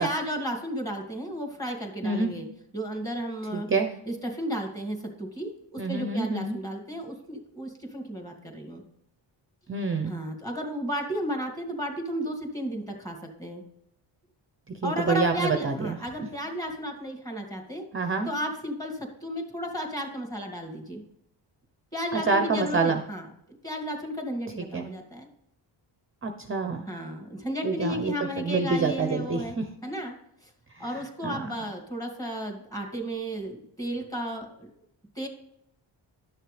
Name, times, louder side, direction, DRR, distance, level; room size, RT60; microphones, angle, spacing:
voice 1, 0.0-2.5 2.7-3.7 4.1-8.8 10.0-13.6 14.8-17.8 18.3-21.0 21.9-23.2 23.6-25.3 26.9-29.6 29.8-30.1 30.4-30.5 30.8-34.7 35.2-35.3, equal, 5° left, 2 dB, 2.4 m, -33 dB
voice 2, 3.5-3.9 5.8-6.6 9.7-10.2 14.8-16.0 17.9-18.3 22.1-23.0 24.7-24.9 26.2-26.9 27.6-29.6 30.8-31.4, right 4 dB, 25° right, 6 dB, 0.8 m, -27 dB
11.5 x 6.5 x 3.3 m, 0.75 s
cardioid pair, 95°, 49 cm